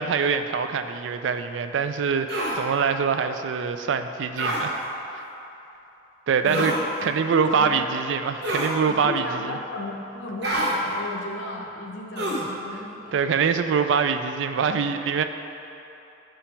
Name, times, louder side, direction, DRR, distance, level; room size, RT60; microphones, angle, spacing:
voice 1, 0.0-4.8 5.1-5.2 6.3-6.7 7.0-9.6 13.1-15.2, right 6 dB, 80° right, 8 dB, 0.3 m, -24 dB
sound 1, 2.3-2.6 4.4-4.6 6.5-6.8 8.4-8.8 10.4-10.7 12.2-12.5, right 1 dB, 60° right, 1.1 m, -26 dB
voice 2, 6.4-6.8 7.3-7.9 8.9-13.2, left 2 dB, 90° left, 1 dB, 0.8 m, -35 dB
5.7 x 5.0 x 4.5 m, 2.9 s
head